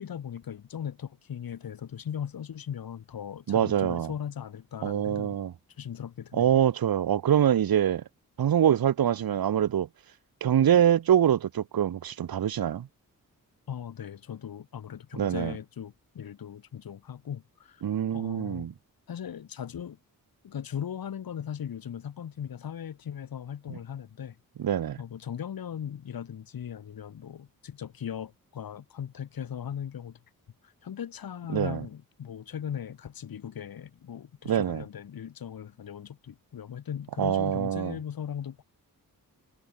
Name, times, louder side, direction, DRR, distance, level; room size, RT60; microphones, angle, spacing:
voice 1, 0.0-5.4 5.8-6.6 13.7-17.8 18.1-18.7 19.1-20.0 20.4-24.4 25.0-30.2 30.6-38.6, left 9 dB, 80° left, 5.8 m, -38 dB
voice 2, 3.5-4.1 4.8-5.5 6.3-8.0 8.4-9.9 10.4-12.9 15.2-15.5 17.8-18.7 23.7-23.8 24.6-25.0 31.5-31.9 34.4-34.8 37.2-38.0, right 10 dB, 85° right, 2.1 m, -24 dB
wide cardioid pair, 175°, 35 cm